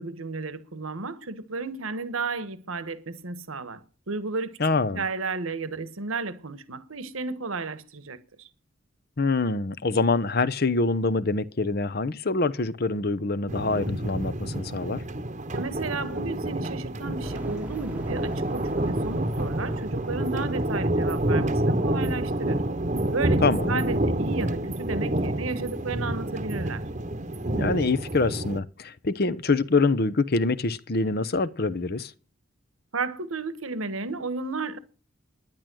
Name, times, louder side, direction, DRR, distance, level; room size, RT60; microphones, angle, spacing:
voice 1, 0.0-3.8 4.1-8.5 15.5-22.6 23.1-26.8 32.9-34.8, right 3 dB, 85° right, 1.4 m, -33 dB
voice 2, 4.6-5.0 9.2-15.0 23.4-23.8 27.5-32.1, left 3 dB, 50° left, 0.8 m, -25 dB
sound 1, 13.5-28.6, right 1 dB, 35° right, 1.0 m, -28 dB
sound 2, 17.2-20.8, equal, 5° right, 1.0 m, -41 dB
11.0 x 10.5 x 6.2 m
head